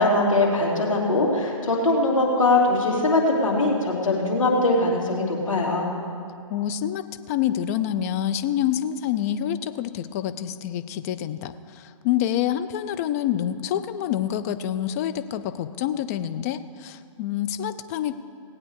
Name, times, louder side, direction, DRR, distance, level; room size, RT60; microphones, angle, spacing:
voice 1, 0.0-5.9, left 2 dB, 75° left, -1 dB, 2.9 m, -21 dB
voice 2, 6.5-18.2, left 11 dB, 30° left, 10 dB, 0.5 m, -27 dB
18.5 x 8.6 x 4.8 m, 2.3 s
figure-of-eight pair, 130°, 17 cm